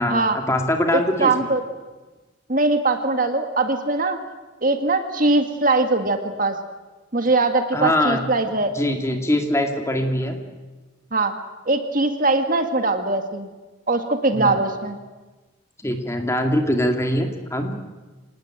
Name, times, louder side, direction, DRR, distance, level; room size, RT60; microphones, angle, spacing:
voice 1, 0.0-1.3 7.7-8.2 8.7-10.3 14.3-14.5 15.8-17.7, left 1 dB, 15° left, 4 dB, 2.4 m, -22 dB
voice 2, 0.9-1.6 2.5-4.2 4.6-6.6 7.1-8.7 11.1-11.3 11.6-13.5 13.9-15.0, right 2 dB, 40° right, 7 dB, 1.8 m, -21 dB
26.5 x 18.5 x 9.0 m, 1.2 s
head